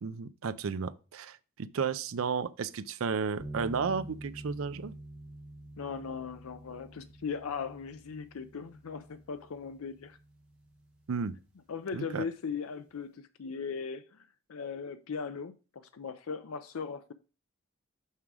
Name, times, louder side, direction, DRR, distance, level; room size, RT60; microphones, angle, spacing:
voice 1, 0.0-4.9 11.1-11.3 11.9-12.2, right 5 dB, 75° right, 0.5 m, -33 dB
sound 1, 3.4-11.6, right 1 dB, 5° right, 1.2 m, -48 dB
voice 2, 5.8-10.2 11.7-17.1, left 5 dB, 85° left, 0.5 m, -38 dB
6.0 x 5.6 x 4.8 m
head